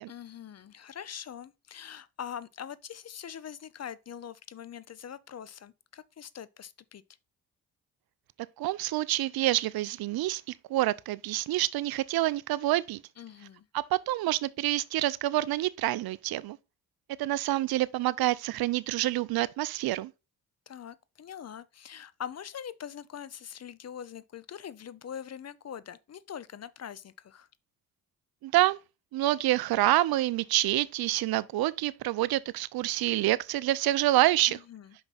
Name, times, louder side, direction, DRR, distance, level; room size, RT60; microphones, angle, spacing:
voice 1, 0.1-7.0 13.2-13.7 20.7-27.5 34.5-34.9, left 9 dB, 40° left, 0.7 m, -43 dB
voice 2, 8.6-10.4 10.7-13.0 13.7-16.6 17.2-20.1 28.4-28.8 29.1-34.6, right 15 dB, 65° right, 0.6 m, -27 dB
5.8 x 5.4 x 4.1 m
supercardioid pair, 55°, 40 cm